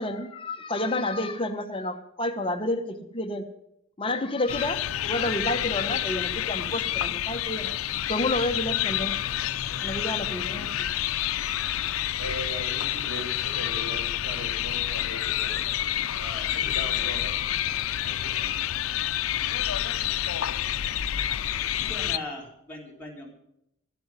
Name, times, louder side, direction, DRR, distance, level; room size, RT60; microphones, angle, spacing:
voice 1, 0.0-3.5 4.0-10.9, left 1 dB, 25° left, 7 dB, 0.9 m, -30 dB
sound 1, 4.5-22.2, left 12 dB, 90° left, 0.5 m, -28 dB
voice 2, 12.1-15.7 16.1-17.3 18.0-18.6, equal, 85° right, 2 dB, 5.7 m, -39 dB
voice 3, 21.8-23.3, left 1 dB, 10° left, -4 dB, 3.8 m, -39 dB
13.5 x 7.8 x 9.5 m, 0.79 s
head